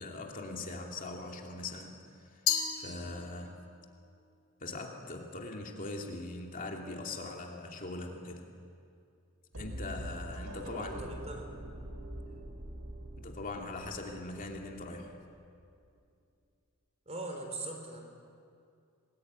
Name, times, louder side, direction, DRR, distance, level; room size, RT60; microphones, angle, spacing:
voice 1, 0.0-2.4 2.8-3.6 4.6-8.4 9.6-11.1 13.2-15.2, left 2 dB, 40° left, 1 dB, 2.7 m, -41 dB
Glass, 2.5-3.7, left 8 dB, 60° left, 2.9 m, -33 dB
sound 1, 9.5-15.5, right 1 dB, 75° right, 3.3 m, -44 dB
voice 2, 10.6-11.5 17.1-18.0, right 2 dB, 30° right, 3 dB, 4.5 m, -41 dB
28.0 x 20.0 x 9.5 m, 2.4 s
head